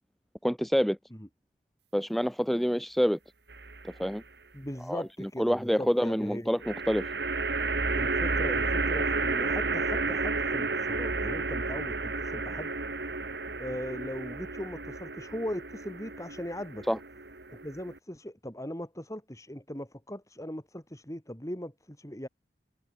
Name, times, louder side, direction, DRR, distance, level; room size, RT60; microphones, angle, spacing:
voice 1, 0.4-1.0 1.9-3.2 4.0-4.2 4.9-7.1 16.9-17.0, equal, ahead, 0.5 m, -27 dB
sound 1, 3.5-4.1 6.6-18.0, right 3 dB, 70° right, 3.6 m, -32 dB
voice 2, 4.5-6.6 7.9-12.7 13.6-16.9 17.5-22.3, equal, 20° left, 5.8 m, -39 dB
head